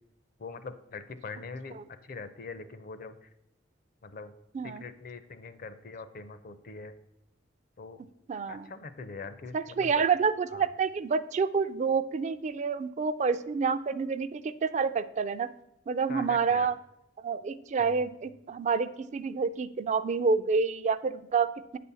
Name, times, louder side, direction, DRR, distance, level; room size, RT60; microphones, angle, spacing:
voice 1, 0.4-3.3 4.0-4.3 4.6-6.9 7.8-8.0 8.5-9.9 10.5-10.7 16.1-16.7 17.8-18.1, left 4 dB, 45° left, 12 dB, 0.6 m, -43 dB
voice 2, 8.3-8.7 9.5-15.5 15.9-16.7 17.2-21.8, right 5 dB, 40° right, 12 dB, 0.3 m, -28 dB
8.9 x 4.2 x 6.8 m, 0.84 s
head